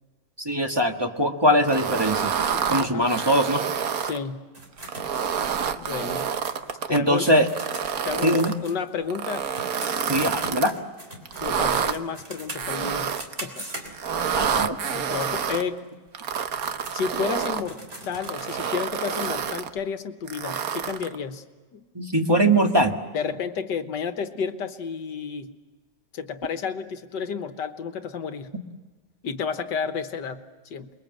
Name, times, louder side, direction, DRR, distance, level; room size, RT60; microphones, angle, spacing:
voice 1, 0.4-2.3 2.7-3.6 6.9-7.5 8.2-8.6 10.1-10.7 14.3-14.8 21.9-23.0, equal, 15° right, 3 dB, 1.5 m, -21 dB
sound 1, 1.6-4.2 4.8-7.0 7.5-8.5 9.1-10.7 11.3-11.9 12.6-13.4 13.9-15.6 16.1-17.6 18.2-19.7 20.3-21.2, right 7 dB, 60° right, 1.4 m, -28 dB
voice 2, 2.5-3.1 4.0-4.4 5.8-6.3 6.7-7.3 8.0-9.5 11.4-13.1 13.4-13.7 14.5-15.8 16.9-17.8 18.1-21.4 21.7-21.8 23.1-25.5 26.1-28.5 29.2-30.9, left 6 dB, 75° left, 9 dB, 1.9 m, -31 dB
sound 2, 4.5-9.2 9.5-14.3 14.8-15.3 15.8-15.9 16.4-18.8, right 1 dB, 35° right, 3.7 m, -42 dB
28.5 x 22.0 x 7.7 m, 1.3 s
omnidirectional pair, 1.9 m